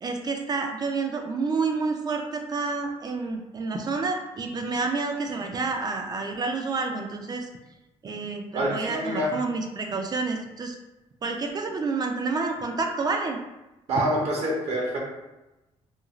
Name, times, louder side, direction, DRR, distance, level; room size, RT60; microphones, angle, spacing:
voice 1, 0.0-7.5 8.0-10.7 11.2-13.4, right 4 dB, 35° right, 4 dB, 0.4 m, -29 dB
voice 2, 8.5-9.4 13.9-15.0, right 1 dB, 60° right, -2 dB, 0.8 m, -26 dB
2.5 x 2.3 x 2.9 m, 0.99 s
cardioid pair, 105°, 12 cm